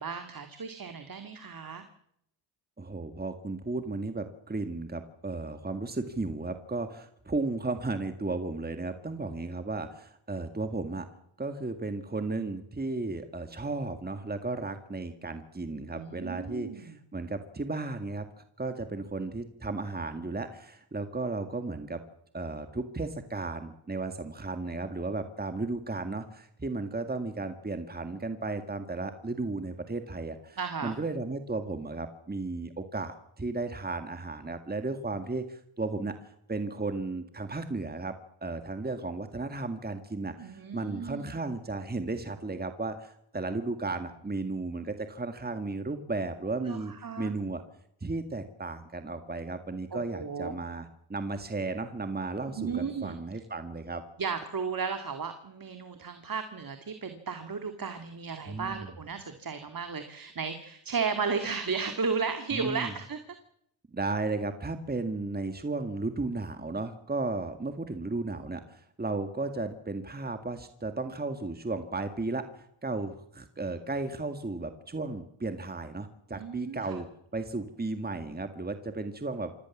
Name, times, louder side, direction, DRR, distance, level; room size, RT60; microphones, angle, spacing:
voice 1, 0.0-1.9 15.9-17.0 30.6-30.9 40.4-41.3 46.6-47.3 49.9-50.5 52.6-53.1 54.2-63.2 76.3-77.0, right 5 dB, 45° right, 7 dB, 2.2 m, -34 dB
voice 2, 2.8-11.1 11.4-18.3 18.6-22.0 22.3-38.2 38.4-47.6 48.0-54.0 58.5-58.9 62.5-62.9 63.9-77.1 77.3-79.6, right 3 dB, 20° right, 7 dB, 2.0 m, -34 dB
26.5 x 17.5 x 7.3 m, 0.73 s
cardioid pair, 90°, 48 cm